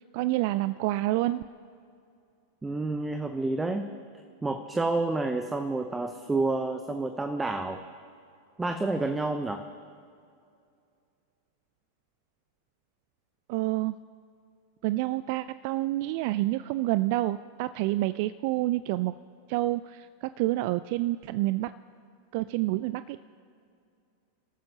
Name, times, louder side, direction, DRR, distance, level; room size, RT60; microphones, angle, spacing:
voice 1, 0.1-1.4 13.5-14.0 14.8-19.2 19.5-21.7 22.3-23.2, right 17 dB, 45° right, 15 dB, 0.3 m, -28 dB
voice 2, 2.6-3.9 4.4-7.8 8.6-9.6, right 2 dB, 10° right, 8 dB, 0.7 m, -29 dB
29.5 x 14.0 x 2.9 m, 2.4 s
figure-of-eight pair, 90°, 0 cm